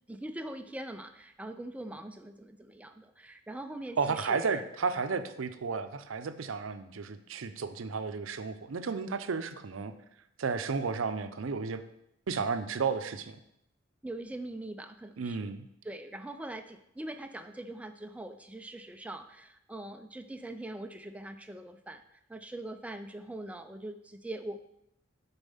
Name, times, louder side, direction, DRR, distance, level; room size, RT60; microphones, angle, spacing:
voice 1, 0.1-4.6 14.0-15.5 15.8-24.7, right 1 dB, 5° right, 7 dB, 0.4 m, -42 dB
voice 2, 4.0-9.9 10.4-11.8 12.3-13.4 15.2-15.7, right 5 dB, 80° right, 10 dB, 0.5 m, -33 dB
7.0 x 4.1 x 5.5 m, 0.80 s
head